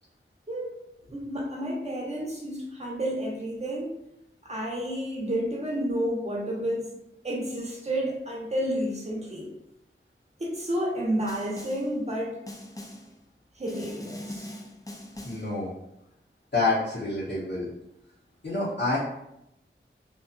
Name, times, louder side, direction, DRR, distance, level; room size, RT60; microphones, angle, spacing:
voice 1, 1.1-3.9 4.4-6.9 7.2-9.5 10.4-12.4 13.5-14.5, equal, 30° right, -3 dB, 0.8 m, -30 dB
Snare drum, 11.3-12.0 12.5-13.2 13.7-15.6, left 1 dB, 15° left, 0.4 m, -41 dB
voice 2, 15.2-15.7 16.5-17.7 18.4-19.0, left 3 dB, 55° left, -11 dB, 0.9 m, -27 dB
2.6 x 2.3 x 2.4 m, 0.82 s
wide cardioid pair, 40°, 21 cm